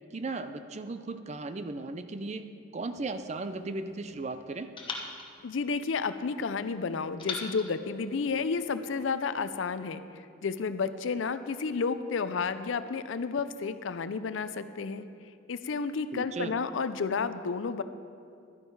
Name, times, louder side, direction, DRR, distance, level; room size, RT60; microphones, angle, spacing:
voice 1, 0.1-4.7 16.1-16.5, right 3 dB, 35° right, 10 dB, 0.5 m, -36 dB
sound 1, 3.0-4.2 4.8-6.4 7.2-8.8, left 4 dB, 25° left, 1.1 m, -43 dB
voice 2, 5.4-15.1 15.5-17.8, left 5 dB, 70° left, 12 dB, 0.5 m, -31 dB
12.0 x 9.9 x 4.7 m, 2.4 s
head